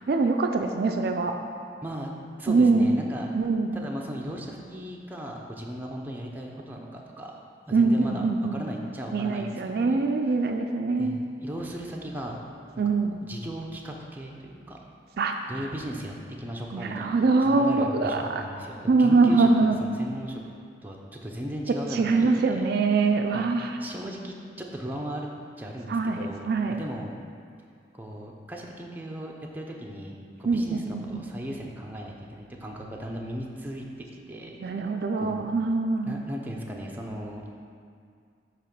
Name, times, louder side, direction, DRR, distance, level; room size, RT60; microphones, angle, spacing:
voice 1, 0.1-1.3 2.5-2.9 3.3-3.8 7.7-8.7 9.1-11.2 12.8-13.2 15.2-15.4 16.7-18.4 18.9-19.8 21.9-23.8 25.9-26.8 30.4-31.2 34.6-36.2, right 3 dB, 60° right, 4 dB, 0.4 m, -23 dB
voice 2, 1.8-2.1 2.4-3.3 3.7-7.4 7.7-10.1 11.0-12.4 13.1-14.8 15.5-20.4 20.8-22.7 23.3-25.3 25.6-26.4 26.7-27.2 27.9-34.5 35.2-35.5 36.0-37.4, equal, 10° right, -1 dB, 0.6 m, -37 dB
8.7 x 3.0 x 5.9 m, 2.3 s
head